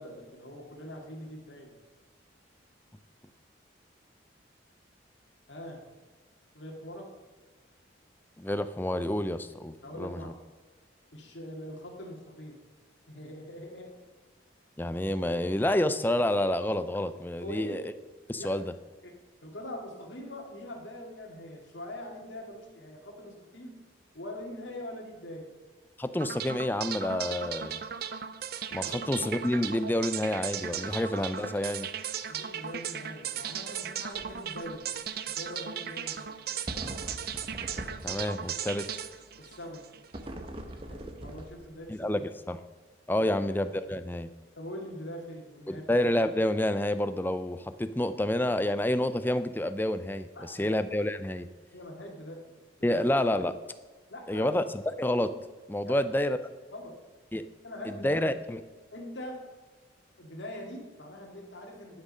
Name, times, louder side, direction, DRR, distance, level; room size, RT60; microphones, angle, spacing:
voice 1, 0.0-1.7 5.5-5.8 6.5-7.1 9.8-10.3 11.1-12.6 13.1-13.9 17.4-17.8 18.4-18.5 19.0-19.1 19.4-23.8 24.1-25.5 28.8-29.0 32.3-34.8 35.3-36.4 39.4-39.8 40.9-42.1 44.6-45.8 50.4-50.7 51.7-53.1 54.1-54.5 55.8-56.0 56.7-56.9 57.6-58.3 58.9-59.4 60.2-62.0, left 1 dB, 65° left, 0 dB, 2.2 m, -42 dB
voice 2, 8.4-10.3 14.8-17.8 18.3-18.7 26.0-27.8 28.7-31.9 38.0-38.9 41.9-42.6 43.1-44.3 45.7-51.5 52.8-53.5 54.3-55.3 55.7-56.4 57.3-57.4 57.9-58.6, left 1 dB, 10° left, 11 dB, 0.4 m, -29 dB
sound 1, 26.2-40.3, right 8 dB, 50° right, 0.5 m, -37 dB
sound 2, 34.2-34.4 34.7-34.8 36.7-38.6 40.1-41.9, right 1 dB, 30° right, 0.8 m, -41 dB
11.5 x 6.3 x 5.5 m, 1.4 s
head